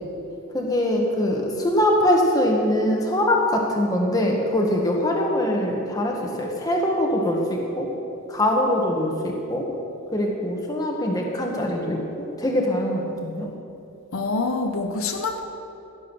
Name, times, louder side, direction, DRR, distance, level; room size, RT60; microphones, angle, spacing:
voice 1, 0.5-7.9 8.3-9.7 10.1-13.5, left 1 dB, 15° left, 0 dB, 1.4 m, -23 dB
voice 2, 14.1-15.5, left 3 dB, 70° left, 4 dB, 0.9 m, -26 dB
16.0 x 7.4 x 6.2 m, 2.8 s
head